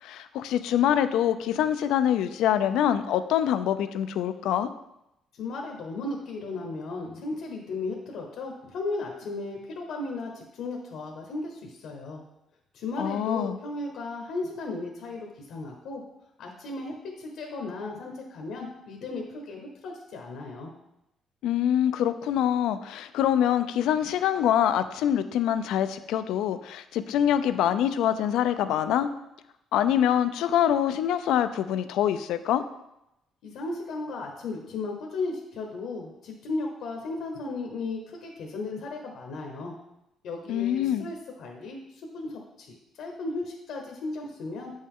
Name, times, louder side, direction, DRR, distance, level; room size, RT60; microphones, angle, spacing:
voice 1, 0.0-4.7 13.0-13.6 21.4-29.1 29.7-32.6 40.5-41.1, left 10 dB, 85° left, 12 dB, 0.4 m, -25 dB
voice 2, 5.3-12.2 12.7-16.0 16.4-20.7 33.4-39.7 40.2-41.8 42.1-44.7, left 3 dB, 70° left, 1 dB, 1.0 m, -35 dB
7.9 x 5.3 x 3.6 m, 0.87 s
cardioid pair, 165°, 0 cm